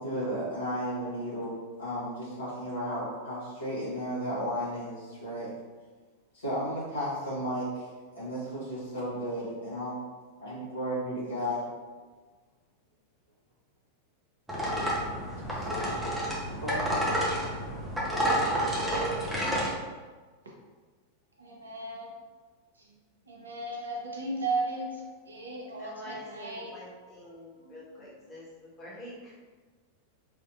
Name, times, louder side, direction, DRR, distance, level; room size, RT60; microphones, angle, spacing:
voice 1, 0.0-1.5 1.8-5.5 6.3-7.9 8.1-9.9 10.4-11.6 15.5-16.2 16.6-17.4, equal, 70° left, -9 dB, 1.3 m, -34 dB
sound 1, 14.5-19.7, equal, 5° right, 0.8 m, -29 dB
voice 2, 21.4-22.1 22.8-22.9 23.3-27.1 27.6-28.1, right 2 dB, 75° right, -2 dB, 0.7 m, -36 dB
voice 3, 25.8-29.4, left 1 dB, 25° left, -8 dB, 1.4 m, -46 dB
3.4 x 2.6 x 2.5 m, 1.4 s
figure-of-eight pair, 90°, 0 cm